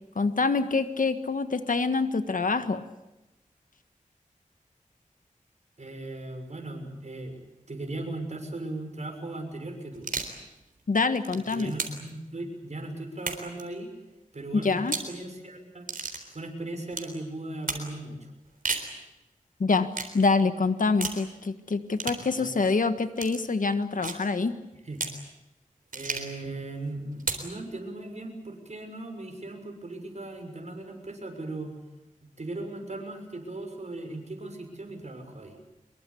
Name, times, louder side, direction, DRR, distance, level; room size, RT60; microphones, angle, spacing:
voice 1, 0.1-2.8 10.9-11.7 14.5-14.9 19.6-19.9 20.1-24.5, left 4 dB, 75° left, 10 dB, 1.7 m, -25 dB
voice 2, 5.8-10.1 11.5-13.9 14.3-15.9 16.3-18.3 22.3-22.6 24.8-25.0 25.9-31.7 32.2-35.6, right 2 dB, 55° right, 4 dB, 6.4 m, -38 dB
sound 1, 9.9-10.4 11.0-12.1 13.2-13.6 14.8-15.1 15.9-16.2 16.9-17.1 17.7-17.9 18.5-18.9 19.9-20.1 21.0-21.2 22.0-22.2 23.2-23.4 24.0-24.3 25.0-25.2 25.9-26.4 27.2-27.5, right 4 dB, 85° right, 3.8 m, -33 dB
25.0 x 22.5 x 8.6 m, 0.99 s
wide cardioid pair, 65°, 14 cm